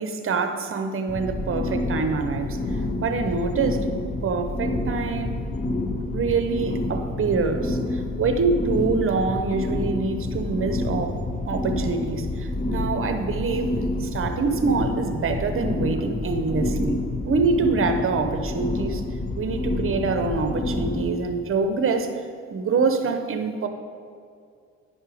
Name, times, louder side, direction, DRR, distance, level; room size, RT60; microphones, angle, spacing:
voice 1, 0.0-4.0 4.2-5.4 6.1-11.1 11.5-19.0 19.4-22.1 22.5-23.7, right 4 dB, 45° right, 7 dB, 0.9 m, -25 dB
sound 1, 1.1-21.1, left 2 dB, 25° left, 0.7 m, -28 dB
10.0 x 5.5 x 4.9 m, 2.3 s
cardioid pair, 90°, 30 cm